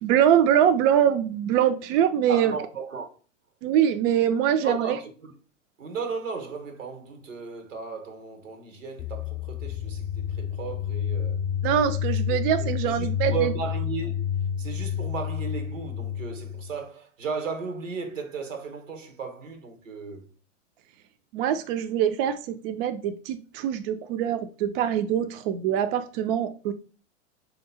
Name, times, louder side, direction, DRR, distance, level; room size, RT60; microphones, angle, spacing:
voice 1, 0.0-2.5 3.6-5.0 11.6-13.5 21.3-26.7, right 9 dB, 50° right, 0.4 m, -23 dB
voice 2, 2.3-3.1 4.6-5.3 5.8-11.4 12.3-14.3 14.6-20.3, right 5 dB, 90° right, 1.0 m, -35 dB
sound 1, 9.0-16.7, left 8 dB, 35° left, 0.6 m, -29 dB
3.2 x 2.8 x 4.1 m
hypercardioid pair, 105°, 38 cm